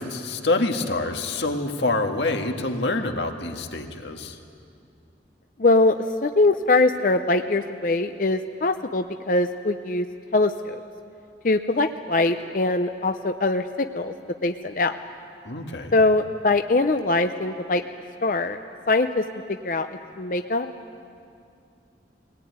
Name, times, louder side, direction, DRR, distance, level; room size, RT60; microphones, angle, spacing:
voice 1, 0.0-4.4 15.4-15.9, left 2 dB, 80° left, 4 dB, 1.7 m, -26 dB
voice 2, 5.6-10.1 10.3-10.8 11.4-14.1 14.4-14.9 15.9-17.8 18.2-18.6 18.9-19.2 19.5-19.9 20.2-20.7, left 2 dB, 45° left, 7 dB, 0.6 m, -22 dB
22.5 x 18.0 x 9.4 m, 2.5 s
head